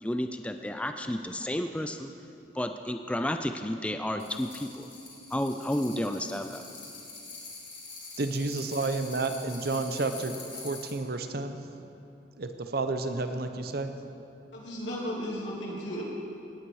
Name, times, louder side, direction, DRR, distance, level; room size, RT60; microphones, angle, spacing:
voice 1, 0.0-2.1 2.5-4.9 5.3-6.6, left 1 dB, 5° left, 7 dB, 0.3 m, -31 dB
sound 1, 4.2-11.0, left 3 dB, 30° left, 3.0 m, -45 dB
voice 2, 8.2-11.6 12.4-13.9, right 3 dB, 55° right, 8 dB, 0.7 m, -31 dB
voice 3, 14.5-16.0, equal, 90° left, -4 dB, 3.1 m, -35 dB
17.5 x 9.1 x 4.7 m, 2.8 s
head